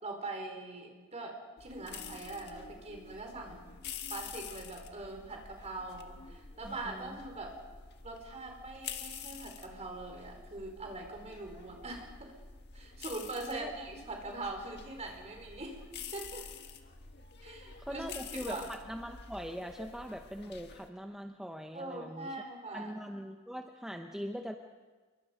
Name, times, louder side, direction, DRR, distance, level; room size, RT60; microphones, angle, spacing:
voice 1, 0.0-3.7 4.1-7.5 8.0-12.3 12.7-15.8 16.1-16.4 17.4-18.7 21.7-23.0, right 2 dB, 30° right, 2 dB, 4.5 m, -42 dB
sound 1, 1.6-20.9, left 6 dB, 55° left, 1.6 m, -48 dB
voice 2, 6.6-7.2 13.5-13.7 17.8-22.4 22.7-24.6, equal, 5° right, 4 dB, 0.8 m, -42 dB
27.5 x 23.5 x 5.2 m, 1.4 s
head